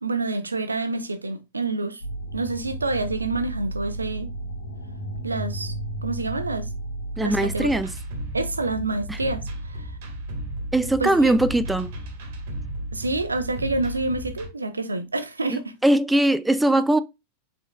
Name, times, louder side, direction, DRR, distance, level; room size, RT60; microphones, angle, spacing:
voice 1, 0.0-2.0 2.3-4.3 5.2-5.7 6.0-6.7 7.2-7.7 8.3-10.0 11.0-11.3 12.9-15.7, right 2 dB, 80° right, 0.6 m, -28 dB
sound 1, 2.0-7.8, right 1 dB, 65° left, 1.2 m, -33 dB
voice 2, 7.2-7.9 9.1-9.2 10.7-11.9 15.8-17.0, right 1 dB, 5° right, 0.3 m, -20 dB
sound 2, 7.3-14.5, right 1 dB, 50° right, 1.5 m, -34 dB
5.0 x 3.7 x 2.3 m
figure-of-eight pair, 90°, 0 cm